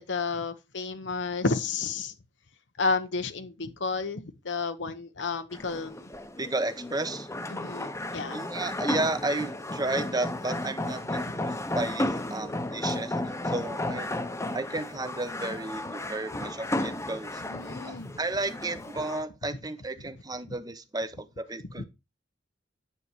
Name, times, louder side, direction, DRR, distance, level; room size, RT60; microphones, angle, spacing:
voice 1, 0.0-2.1 2.8-6.1 7.5-8.4 11.3-11.4 17.5-18.2 21.8-21.9, left 4 dB, 75° left, 1.0 m, -31 dB
sound 1, 5.5-19.2, left 1 dB, 15° left, 1.0 m, -34 dB
voice 2, 6.4-7.3 8.3-14.1 14.5-17.4 17.9-21.8, right 2 dB, 20° right, 1.0 m, -33 dB
9.8 x 7.0 x 4.5 m
head